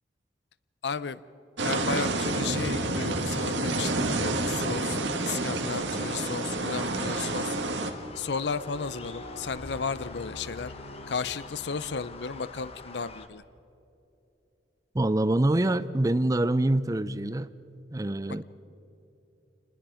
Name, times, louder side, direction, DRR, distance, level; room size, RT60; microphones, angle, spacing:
voice 1, 0.8-1.2 1.6-5.0 5.2-7.6 8.2-10.7 11.1-13.4, left 5 dB, 70° left, 16 dB, 0.6 m, -34 dB
sound 1, 1.6-7.9, right 2 dB, 85° right, 1.8 m, -29 dB
sound 2, 5.7-13.3, left 3 dB, 35° left, 1.4 m, -46 dB
sound 3, 6.3-12.8, left 1 dB, 85° left, 2.6 m, -48 dB
voice 2, 14.9-17.5 17.9-18.4, right 1 dB, 20° right, 15 dB, 0.5 m, -25 dB
27.5 x 20.5 x 5.0 m, 2.8 s
head